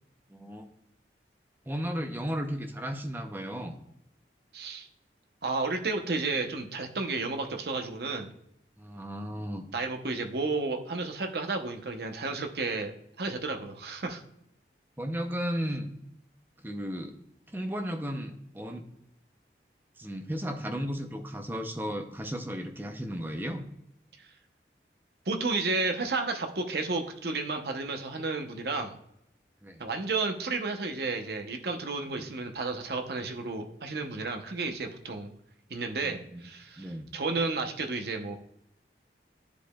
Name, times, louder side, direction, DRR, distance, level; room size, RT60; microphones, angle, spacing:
voice 1, 0.3-0.6 1.7-3.8 8.8-9.7 15.0-15.9 16.6-17.2 17.5-18.9 20.0-23.6 29.6-29.9 32.1-32.3 36.0-36.4 36.8-37.1, equal, 10° right, 5 dB, 0.5 m, -35 dB
voice 2, 4.5-4.9 5.4-8.3 9.7-12.9 13.2-14.2 25.3-29.0 29.8-35.3 35.7-38.4, right 3 dB, 65° right, 5 dB, 0.8 m, -32 dB
10.5 x 5.0 x 2.3 m, 0.78 s
head